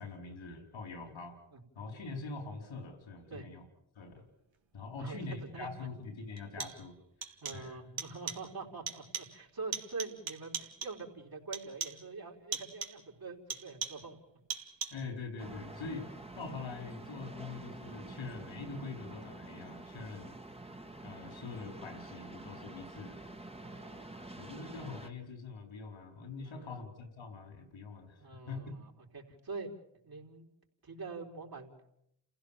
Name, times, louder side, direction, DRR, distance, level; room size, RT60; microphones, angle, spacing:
voice 1, 0.0-1.4 1.7-3.7 3.9-4.2 4.7-7.0 7.2-7.8 14.9-16.1 16.4-20.4 21.0-23.2 24.4-28.7, left 4 dB, 80° left, 6 dB, 4.5 m, -44 dB
voice 2, 5.0-5.9 6.6-6.7 7.4-14.2 20.2-20.3 23.6-24.2 26.5-26.8 28.2-29.7 30.0-30.5 30.8-31.7, right 4 dB, 50° right, 0 dB, 4.5 m, -45 dB
sound 1, 5.3-5.4 6.4-6.9 7.2-7.7 8.0-8.5 8.9-9.4 9.7-11.1 11.5-12.1 12.5-13.1 13.5-14.1 14.5-15.1, right 6 dB, 75° right, 2.0 m, -41 dB
sound 2, 15.4-25.1, right 2 dB, 15° right, 1.9 m, -48 dB
29.0 x 16.0 x 7.3 m, 0.77 s
supercardioid pair, 40°, 46 cm